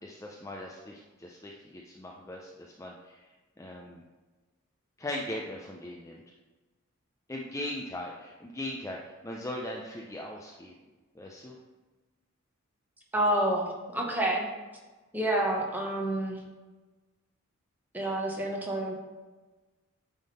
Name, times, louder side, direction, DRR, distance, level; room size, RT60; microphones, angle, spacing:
voice 1, 0.0-3.3 3.6-4.0 5.0-6.2 7.3-10.7 11.1-11.6, left 1 dB, 15° left, -1 dB, 0.4 m, -39 dB
voice 2, 13.1-14.5 15.1-16.4 17.9-18.9, right 1 dB, 10° right, -1 dB, 1.0 m, -28 dB
9.1 x 3.6 x 4.1 m, 1.2 s
head